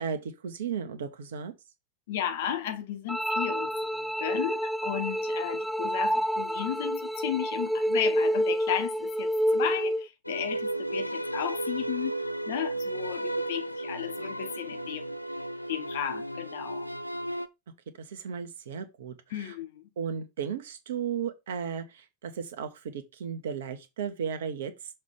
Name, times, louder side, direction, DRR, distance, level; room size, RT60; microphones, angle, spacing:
voice 1, 0.0-1.5 18.0-19.5 20.0-24.7, right 7 dB, 60° right, 1.3 m, -35 dB
voice 2, 2.1-12.2 12.5-15.2 15.7-16.9 19.3-19.8, left 10 dB, 55° left, 1.1 m, -34 dB
sound 1, 3.1-10.1, equal, ahead, 0.3 m, -28 dB
sound 2, 10.2-17.5, right 1 dB, 90° left, 0.5 m, -34 dB
6.5 x 3.4 x 5.3 m
figure-of-eight pair, 90°, 0 cm